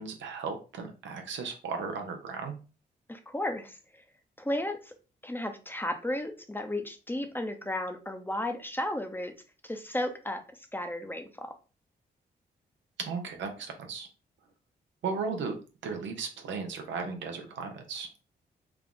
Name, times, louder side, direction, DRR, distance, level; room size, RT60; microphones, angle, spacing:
voice 1, 0.0-2.5 13.1-14.1 15.0-15.5 15.8-18.1, right 5 dB, 85° right, 4 dB, 0.8 m, -36 dB
voice 2, 3.1-3.8 4.4-4.9 5.2-9.3 9.6-10.4 10.7-11.5, left 1 dB, 10° left, 6 dB, 0.7 m, -34 dB
3.5 x 2.4 x 3.7 m, 0.33 s
cardioid pair, 60°, 19 cm